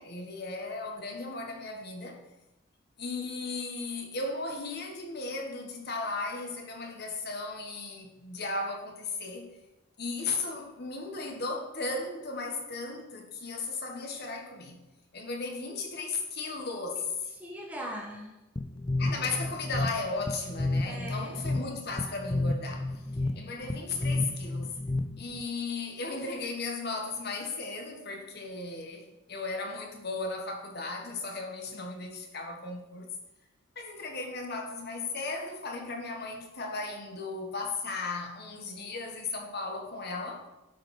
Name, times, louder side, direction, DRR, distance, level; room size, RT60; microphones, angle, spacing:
voice 1, 0.0-2.2 3.0-9.5 10.0-14.8 15.1-17.2 19.0-23.0 23.3-24.8 25.2-33.1 33.7-40.5, left 3 dB, 50° left, 1.5 m, -36 dB
voice 2, 17.4-18.4 20.8-21.5 23.2-23.5, equal, 5° right, 1.6 m, -41 dB
sound 1, 18.6-25.4, left 2 dB, 20° left, 0.5 m, -32 dB
11.5 x 5.1 x 5.9 m
head